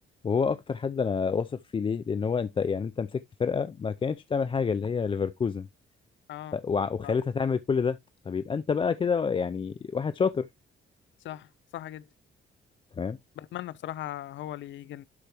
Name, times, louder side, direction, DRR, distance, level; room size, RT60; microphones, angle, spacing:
voice 1, 0.2-5.7 6.5-8.0 8.3-10.5 13.0-13.2, left 5 dB, 25° left, 0.4 m, -28 dB
voice 2, 11.2-12.1 13.4-15.0, left 13 dB, 70° left, 0.6 m, -39 dB
12.0 x 4.5 x 2.9 m
cardioid pair, 90°, 20 cm